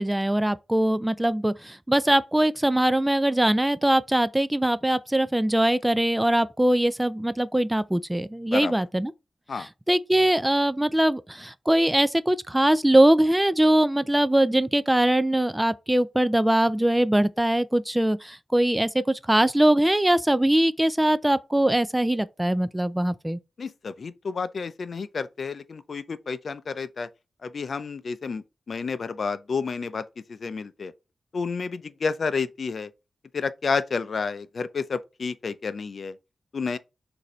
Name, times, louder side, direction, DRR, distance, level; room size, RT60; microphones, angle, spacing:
voice 1, 0.0-9.1 9.6-23.4, right 1 dB, 10° right, 0.3 m, -22 dB
voice 2, 23.6-27.1 27.4-30.0 30.3-30.9 31.3-32.9 33.3-36.2 36.5-36.8, left 5 dB, 60° left, 0.4 m, -30 dB
6.4 x 2.7 x 3.0 m
cardioid pair, 80°, 0 cm